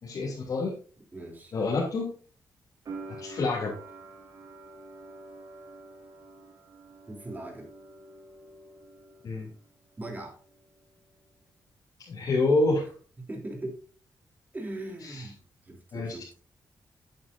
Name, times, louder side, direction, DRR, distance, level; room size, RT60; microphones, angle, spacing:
voice 1, 0.0-0.7 1.5-2.1 3.1-3.8 9.2-9.5 12.0-12.8 15.0-15.3 15.9-16.1, left 2 dB, 60° left, -5 dB, 3.1 m, -27 dB
voice 2, 1.1-1.5 7.1-7.7 10.0-10.4 13.2-13.8 14.5-15.4 15.6-16.3, right 2 dB, 25° right, 2 dB, 3.3 m, -39 dB
sound 1, 2.9-9.7 9.9-10.8, right 2 dB, 60° right, 3.2 m, -47 dB
10.5 x 8.7 x 2.7 m, 0.40 s
cardioid pair, 90°, 7 cm